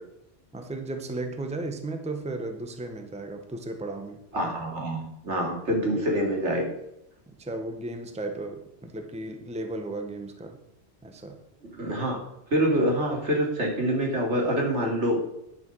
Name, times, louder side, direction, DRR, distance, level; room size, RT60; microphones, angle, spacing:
voice 1, 0.5-4.5 7.4-10.6 11.0-11.4, right 2 dB, 5° right, 5 dB, 1.0 m, -35 dB
voice 2, 4.3-6.6 11.8-12.2 12.5-15.2, equal, 75° right, 0 dB, 3.0 m, -26 dB
10.5 x 6.9 x 6.2 m, 0.81 s
omnidirectional pair, 1.2 m